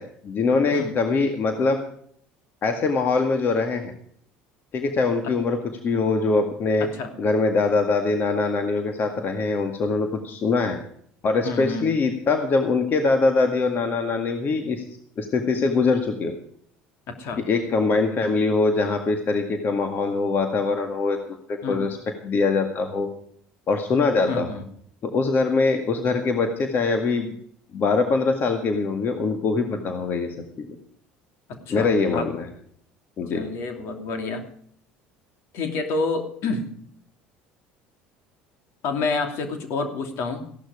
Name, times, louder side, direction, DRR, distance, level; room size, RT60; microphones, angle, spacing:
voice 1, 0.0-1.8 2.6-3.9 4.7-5.6 5.8-6.9 7.2-10.8 11.2-14.8 15.2-16.3 17.4-21.2 21.5-22.0 22.2-23.1 23.7-24.5 25.0-27.4 27.7-30.3 30.6-30.7 31.7-32.5 33.2-33.4, left 3 dB, 45° left, 5 dB, 1.9 m, -23 dB
voice 2, 6.8-7.1 11.4-11.9 17.1-17.4 21.6-21.9 24.3-24.6 31.5-32.3 33.3-34.4 35.5-36.7 38.8-40.4, left 3 dB, 65° left, 5 dB, 2.9 m, -29 dB
15.5 x 11.5 x 5.0 m, 0.63 s
supercardioid pair, 85°, 5 cm